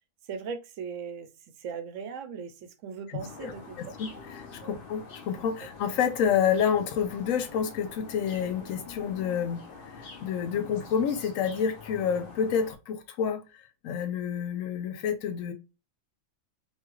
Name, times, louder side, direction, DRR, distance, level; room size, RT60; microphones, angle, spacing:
voice 1, 0.2-3.8 4.6-4.8 5.6-5.7, right 6 dB, 75° right, 0.9 m, -39 dB
sound 1, 3.2-12.7, left 5 dB, 55° left, 0.7 m, -46 dB
voice 2, 4.6-9.6 9.9-13.4 13.8-15.5, left 7 dB, 80° left, 1.0 m, -28 dB
3.0 x 2.3 x 2.9 m
omnidirectional pair, 1.3 m